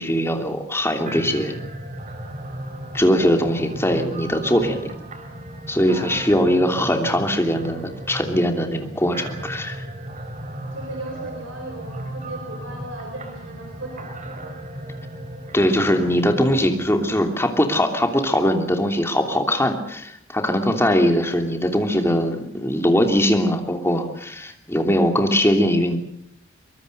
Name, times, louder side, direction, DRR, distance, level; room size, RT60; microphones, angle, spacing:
voice 1, 0.0-1.6 2.9-4.9 5.7-9.8 15.5-26.0, equal, 15° left, 5 dB, 3.0 m, -21 dB
sound 1, 1.1-17.2, right 1 dB, 40° right, 4.0 m, -36 dB
voice 2, 5.8-6.3 10.7-14.4, right 2 dB, 80° right, 2 dB, 4.7 m, -36 dB
24.0 x 22.5 x 6.7 m, 0.70 s
head